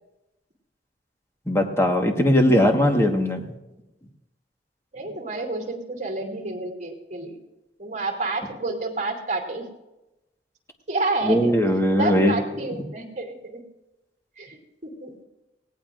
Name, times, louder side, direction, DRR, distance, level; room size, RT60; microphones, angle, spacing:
voice 1, 1.5-3.4 11.2-12.4, equal, 15° left, 3 dB, 1.4 m, -19 dB
voice 2, 4.9-7.4 7.8-9.7 10.9-11.6 11.9-13.6 14.4-15.2, right 3 dB, 45° right, 1 dB, 2.6 m, -29 dB
18.5 x 17.5 x 2.6 m, 1.0 s
head